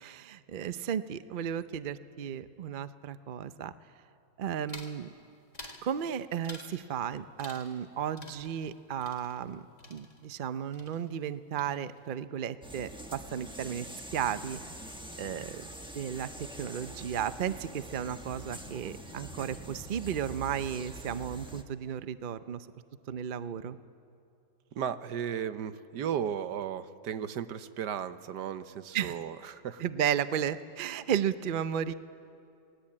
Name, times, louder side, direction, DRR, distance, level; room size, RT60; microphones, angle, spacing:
voice 1, 0.0-3.7 4.4-5.1 5.8-9.6 9.9-14.6 15.2-15.6 15.9-22.7 23.1-23.8 28.9-29.2 29.8-31.9, right 9 dB, 55° right, 13 dB, 0.5 m, -34 dB
sound 1, 4.7-5.0 5.5-5.9 6.4-6.8 7.4-7.9 8.2-10.5 10.7-11.3 11.6-12.1, left 2 dB, 25° left, 2.1 m, -49 dB
sound 2, 12.6-21.6, right 1 dB, 5° right, 1.1 m, -45 dB
voice 2, 24.7-29.8, right 8 dB, 85° right, 12 dB, 1.5 m, -35 dB
28.0 x 20.0 x 8.6 m, 2.6 s
omnidirectional pair, 1.8 m